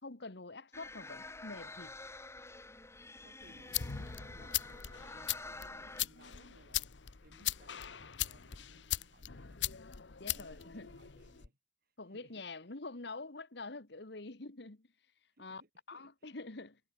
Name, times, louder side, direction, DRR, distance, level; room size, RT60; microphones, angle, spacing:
voice 1, 0.0-1.9 10.2-10.9 12.0-14.9 15.4-15.6 15.9-16.8, left 3 dB, 65° left, 1.7 m, -46 dB
sound 1, 0.7-6.0, left 2 dB, 15° left, 1.9 m, -48 dB
voice 2, 3.2-6.9 7.2-9.6 10.3-12.5 15.3-16.4, right 1 dB, 55° right, 5.7 m, -64 dB
sound 2, 3.4-11.5, left 12 dB, 90° left, 1.0 m, -40 dB
head